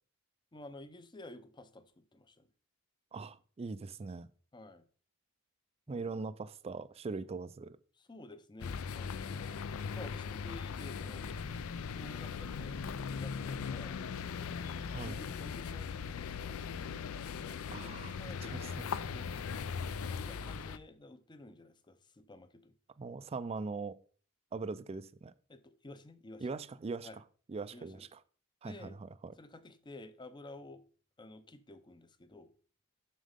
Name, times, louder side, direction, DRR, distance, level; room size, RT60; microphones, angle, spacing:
voice 1, 0.5-2.5 4.5-4.8 5.9-6.3 8.0-9.6 9.9-11.3 11.9-14.0 14.6-17.1 17.4-18.6 19.1-19.3 20.1-22.7 25.5-26.5 27.0-27.2 27.7-28.1 28.6-29.0 29.4-30.8 31.2-32.5, left 2 dB, 20° left, 0.5 m, -52 dB
voice 2, 3.1-4.3 5.9-7.8 14.9-15.2 17.7-18.9 23.0-24.0 24.5-25.3 26.4-27.1 27.5-28.2 28.6-29.3, right 4 dB, 30° right, 0.3 m, -41 dB
sound 1, 8.6-20.8, left 6 dB, 70° left, 0.4 m, -39 dB
7.4 x 6.4 x 3.5 m
head